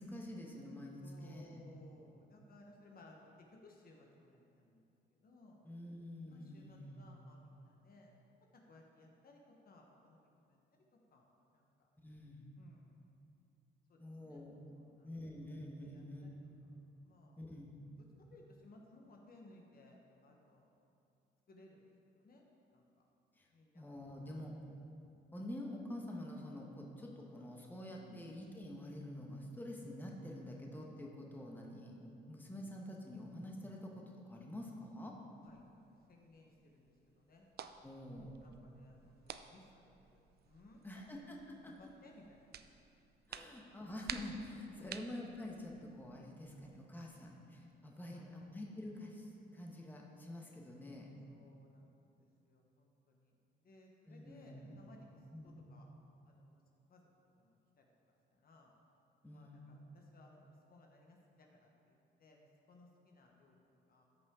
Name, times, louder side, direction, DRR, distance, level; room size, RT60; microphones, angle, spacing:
voice 1, 0.0-1.6 5.6-7.1 12.0-12.5 14.0-14.8 15.0-16.2 17.4-17.7 23.4-23.5 23.7-24.6 25.3-35.1 37.8-38.5 40.8-41.7 43.3-51.1 54.1-54.8 55.3-55.6 59.2-59.7, left 1 dB, 10° left, -1 dB, 1.2 m, -47 dB
voice 2, 1.0-4.8 5.1-5.7 6.3-8.1 8.5-11.9 12.6-13.0 13.9-14.4 14.7-15.1 15.8-16.4 17.0-17.5 18.0-20.7 21.5-21.8 22.1-22.4 22.7-22.9 23.5-24.4 28.0-28.3 35.4-37.5 38.1-41.0 41.6-42.7 43.4-43.5 44.8-45.0 48.0-48.5 51.3-55.9 56.3-56.6 56.9-57.0 57.4-57.9 58.3-58.7 59.3-64.1, left 2 dB, 50° left, 0 dB, 1.2 m, -62 dB
sound 1, 35.4-46.7, right 8 dB, 55° right, 0.5 m, -53 dB
13.5 x 5.6 x 3.7 m, 2.6 s
cardioid pair, 90°, 20 cm